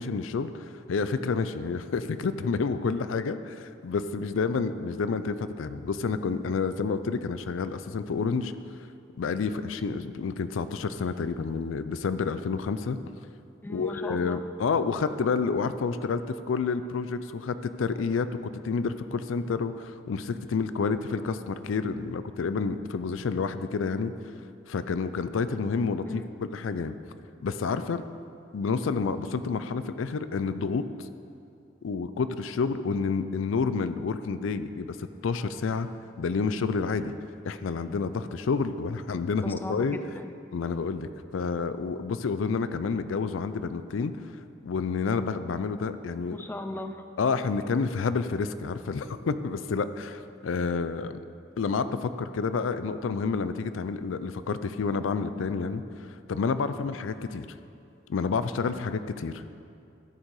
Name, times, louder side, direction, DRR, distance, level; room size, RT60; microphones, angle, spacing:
voice 1, 0.0-8.5 9.2-13.0 13.7-18.3 18.6-24.1 24.7-26.2 26.5-26.9 27.4-28.0 28.5-31.1 31.8-35.0 35.2-35.9 36.2-37.1 37.4-40.0 40.5-44.1 44.6-46.4 47.2-51.2 51.6-57.5 58.1-59.5, left 5 dB, 90° left, 12 dB, 0.4 m, -29 dB
voice 2, 13.6-14.5 26.1-26.3 39.4-40.3 46.3-47.1, left 1 dB, 10° left, 7 dB, 0.4 m, -38 dB
13.0 x 6.5 x 4.7 m, 2.6 s
head